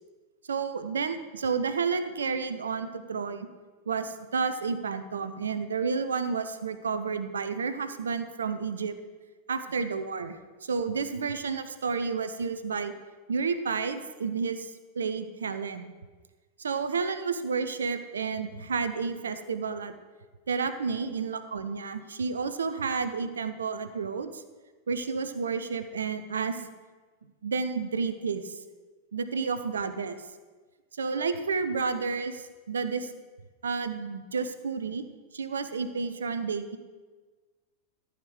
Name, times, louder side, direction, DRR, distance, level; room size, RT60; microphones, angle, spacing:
voice 1, 0.5-3.5 3.9-9.0 9.5-12.9 13.3-15.9 16.6-19.9 20.5-24.4 24.9-26.7 27.4-28.6 29.1-30.2 30.9-33.1 33.6-35.0 35.3-36.8, right 5 dB, 70° right, 10 dB, 0.7 m, -31 dB
13.5 x 5.1 x 8.0 m, 1.3 s
figure-of-eight pair, 90°, 0 cm